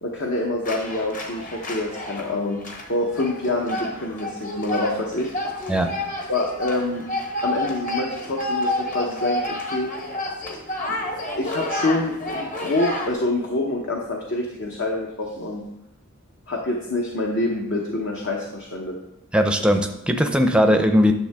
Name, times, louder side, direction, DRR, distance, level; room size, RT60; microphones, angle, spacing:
voice 1, 0.0-2.6 2.9-5.3 6.3-7.0 7.4-9.9 10.9-15.6 16.5-19.0, left 2 dB, 55° left, 0 dB, 0.9 m, -26 dB
sound 1, 0.6-13.1, left 1 dB, 40° left, 1.2 m, -30 dB
voice 2, 19.3-21.1, equal, 5° right, 6 dB, 0.6 m, -19 dB
10.0 x 6.6 x 3.5 m, 0.87 s
head